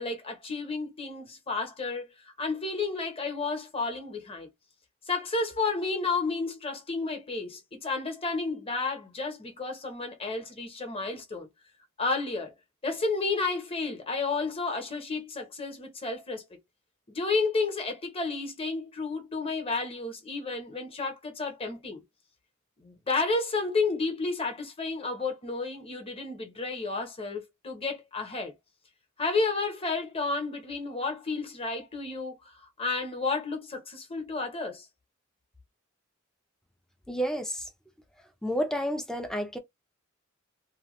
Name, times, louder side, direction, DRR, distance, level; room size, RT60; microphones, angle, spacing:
voice 1, 0.0-4.5 5.1-11.5 12.0-12.5 12.8-16.4 17.1-22.0 22.8-28.5 29.2-34.9, left 3 dB, 30° left, 1.1 m, -31 dB
voice 2, 37.1-37.7 38.4-39.6, equal, 5° left, 0.6 m, -30 dB
2.9 x 2.3 x 3.1 m
head